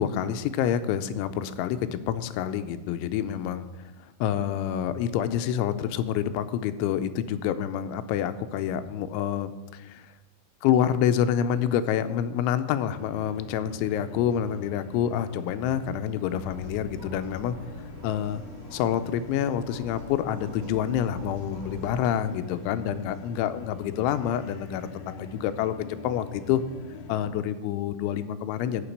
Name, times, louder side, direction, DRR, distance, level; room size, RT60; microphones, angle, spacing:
voice 1, 0.0-3.7 4.2-10.1 10.6-17.6 18.0-18.4 18.7-26.6 27.1-28.9, left 9 dB, 85° left, 10 dB, 2.9 m, -27 dB
sound 1, 12.9-27.3, left 3 dB, 65° left, 2.7 m, -43 dB
sound 2, 16.3-22.2, left 1 dB, 50° right, 2.6 m, -46 dB
9.8 x 5.9 x 8.6 m, 1.1 s
omnidirectional pair, 5.5 m